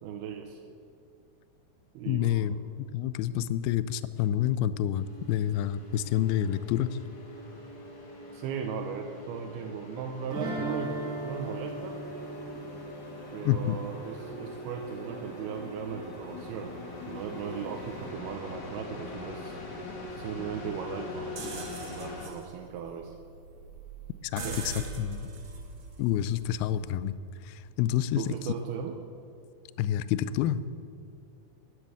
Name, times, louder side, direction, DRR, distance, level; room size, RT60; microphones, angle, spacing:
voice 1, 0.0-0.6 1.9-2.6 8.3-12.0 13.3-16.8 17.1-19.6 20.2-23.2 24.4-24.9 28.2-29.0, right 7 dB, 85° right, 3 dB, 2.7 m, -37 dB
voice 2, 2.1-7.0 13.5-13.8 24.3-25.3 26.0-27.2 27.4-28.5 29.8-30.6, left 11 dB, 85° left, 15 dB, 2.4 m, -28 dB
sound 1, 4.9-22.3, left 2 dB, 50° left, 1.3 m, -43 dB
sound 2, 10.3-15.2, right 1 dB, 30° right, 2.0 m, -38 dB
sound 3, 21.4-27.2, right 3 dB, 55° right, 1.5 m, -42 dB
12.0 x 11.0 x 8.4 m, 2.4 s
omnidirectional pair, 4.4 m